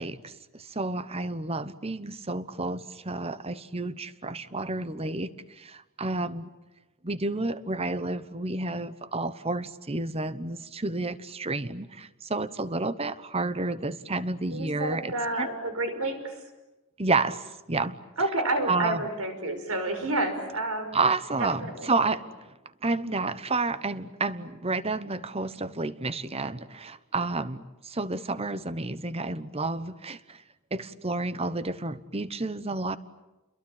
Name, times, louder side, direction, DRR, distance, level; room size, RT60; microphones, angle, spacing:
voice 1, 0.0-6.5 7.0-15.5 17.0-18.0 18.7-19.0 20.9-22.2 22.8-30.4 30.7-33.0, right 3 dB, 25° right, 14 dB, 1.0 m, -30 dB
voice 2, 14.5-16.4 18.2-21.0 21.4-22.1, right 2 dB, 75° right, 7 dB, 5.6 m, -30 dB
30.0 x 22.5 x 8.9 m, 1.0 s
head